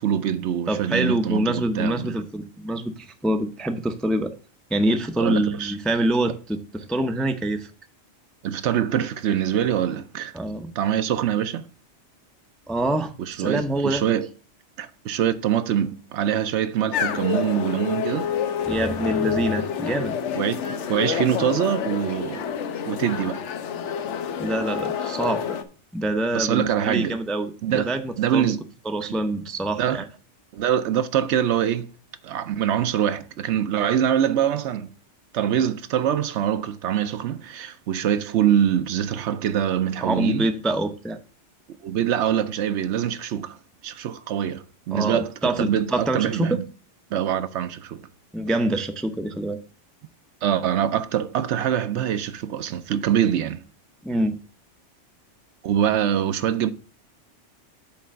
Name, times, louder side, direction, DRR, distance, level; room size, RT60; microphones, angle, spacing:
voice 1, 0.0-2.1 5.2-5.7 8.4-10.4 10.8-11.7 13.2-14.3 14.8-18.3 20.3-22.5 22.9-23.4 26.3-27.2 27.6-28.6 29.8-30.0 30.5-31.9 32.2-34.9 35.3-40.5 41.8-43.6 43.8-46.6 47.1-48.1 50.4-53.6 55.6-56.7, right 9 dB, 75° right, 0.9 m, -24 dB
voice 2, 0.7-4.3 4.7-7.7 10.3-10.7 12.7-14.0 18.7-20.1 24.4-25.6 25.9-28.5 28.9-30.0 40.0-41.2 44.9-46.6 48.3-49.6 54.0-54.4, right 1 dB, ahead, 0.4 m, -25 dB
sound 1, 16.9-25.6, left 7 dB, 75° left, 1.0 m, -28 dB
8.4 x 3.3 x 6.3 m
omnidirectional pair, 1.2 m